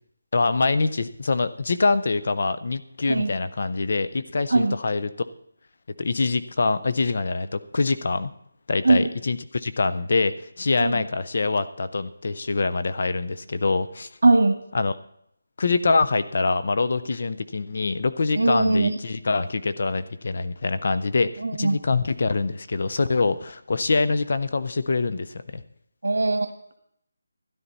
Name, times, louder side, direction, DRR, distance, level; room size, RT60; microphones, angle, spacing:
voice 1, 0.3-5.1 6.0-8.3 8.7-14.1 14.7-14.9 15.6-21.3 21.6-25.6, left 3 dB, 35° left, 13 dB, 0.5 m, -24 dB
voice 2, 14.2-14.6 18.4-18.9 21.4-21.8 26.0-26.5, right 2 dB, 80° right, 8 dB, 1.6 m, -20 dB
13.0 x 10.5 x 4.1 m, 0.71 s
figure-of-eight pair, 180°, 0 cm